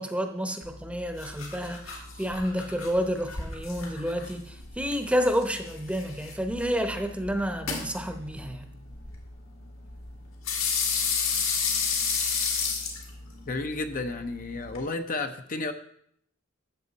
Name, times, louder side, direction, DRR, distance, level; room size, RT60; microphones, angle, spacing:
voice 1, 0.0-8.7, equal, 5° right, 6 dB, 0.8 m, -30 dB
sound 1, 0.6-14.8, left 5 dB, 85° left, 2.4 m, -33 dB
voice 2, 13.5-15.7, left 3 dB, 45° left, 7 dB, 0.7 m, -32 dB
13.0 x 8.1 x 4.1 m, 0.70 s
head